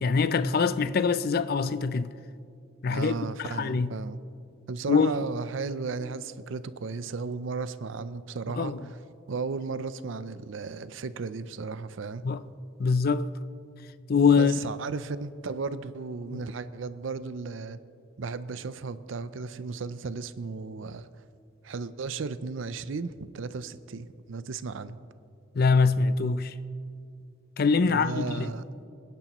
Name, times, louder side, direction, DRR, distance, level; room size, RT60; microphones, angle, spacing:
voice 1, 0.0-2.1 2.8-3.1 3.4-3.9 4.9-5.1 8.6-8.8 12.2-12.4 12.8-13.3 14.1-14.6 25.6-26.5 27.6-28.5, left 5 dB, 50° left, 0.4 m, -23 dB
voice 2, 2.9-4.2 4.7-9.0 9.3-12.3 14.3-17.8 18.2-21.1 21.6-25.0 27.8-28.6, right 4 dB, 70° right, 0.5 m, -35 dB
26.5 x 10.5 x 3.0 m
head